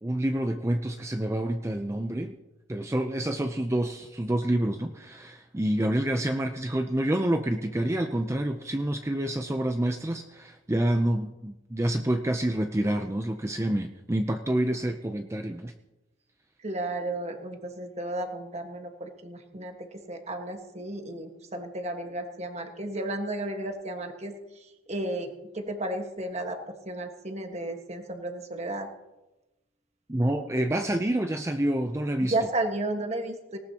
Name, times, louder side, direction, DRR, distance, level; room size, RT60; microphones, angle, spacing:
voice 1, 0.0-2.4 2.7-15.7 30.1-32.3, right 1 dB, 15° right, 6 dB, 0.5 m, -28 dB
voice 2, 16.6-26.6 26.8-28.9 32.2-33.6, right 1 dB, 35° right, 4 dB, 1.5 m, -33 dB
19.0 x 18.5 x 2.9 m, 1.0 s
head